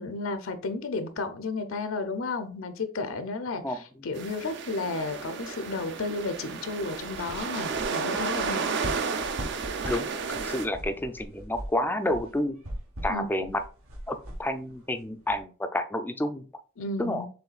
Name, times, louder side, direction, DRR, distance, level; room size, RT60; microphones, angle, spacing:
voice 1, 0.0-8.6 13.1-13.3 16.8-17.3, left 3 dB, 70° left, 9 dB, 0.6 m, -33 dB
sound 1, 4.1-10.7, right 5 dB, 60° right, 0.6 m, -32 dB
sound 2, 6.9-15.4, equal, 80° right, 1.2 m, -41 dB
voice 2, 9.8-12.6 13.0-13.6 14.1-16.5 17.0-17.3, left 1 dB, 10° left, 8 dB, 0.4 m, -30 dB
6.8 x 3.1 x 2.4 m, 0.38 s
head